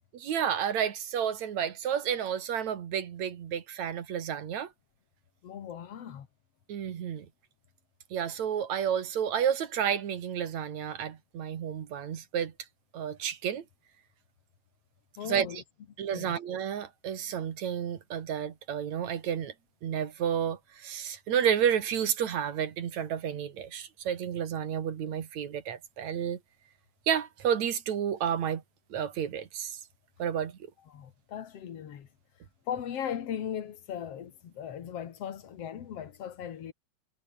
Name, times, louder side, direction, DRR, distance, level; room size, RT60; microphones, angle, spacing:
voice 1, 0.1-4.7 6.7-7.3 8.1-12.5 12.9-13.6 15.2-15.6 16.0-19.5 19.8-26.4 27.1-28.6 28.9-29.8 30.2-30.6, right 8 dB, 65° right, 3.1 m, -31 dB
voice 2, 5.4-6.3 15.2-15.6 16.1-16.4 30.9-32.1 32.7-36.7, left 9 dB, 55° left, 2.6 m, -38 dB
omnidirectional pair, 3.5 m